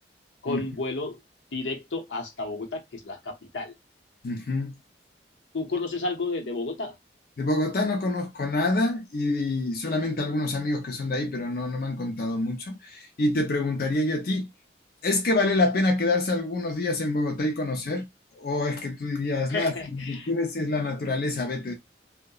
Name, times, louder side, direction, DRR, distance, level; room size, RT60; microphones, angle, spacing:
voice 1, 0.4-1.2 1.5-3.7 5.5-6.9 19.5-20.3, left 3 dB, 90° left, 0.8 m, -32 dB
voice 2, 4.2-4.8 7.4-14.5 15.0-18.1 18.3-21.7, left 2 dB, 50° left, 0.5 m, -26 dB
2.8 x 2.1 x 2.2 m
head